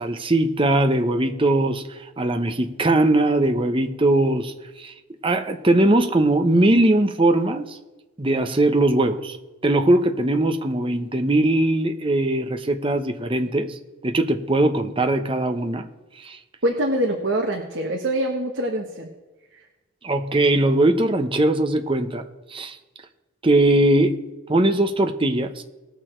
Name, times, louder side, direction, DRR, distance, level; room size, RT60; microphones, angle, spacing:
voice 1, 0.0-4.9 5.2-7.8 8.2-9.4 9.6-13.8 14.0-15.9 16.2-16.4 20.0-22.2 22.5-22.8 23.4-24.2 24.5-25.6, right 1 dB, 25° right, 6 dB, 0.8 m, -20 dB
voice 2, 16.6-19.1, right 1 dB, 55° right, 1 dB, 1.3 m, -24 dB
19.5 x 6.5 x 4.5 m, 1.2 s
head